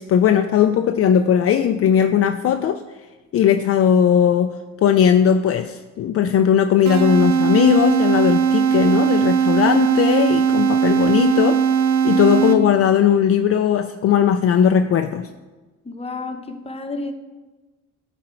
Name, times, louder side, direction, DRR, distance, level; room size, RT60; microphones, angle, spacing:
voice 1, 0.0-2.8 3.3-4.5 4.8-11.6 12.0-15.3, left 8 dB, 50° left, 7 dB, 0.4 m, -18 dB
sound 1, 6.8-12.9, right 7 dB, 65° right, 0.7 m, -19 dB
voice 2, 15.8-17.1, left 3 dB, 20° left, 6 dB, 0.9 m, -30 dB
11.5 x 4.3 x 4.4 m, 1.2 s
cardioid pair, 90°, 30 cm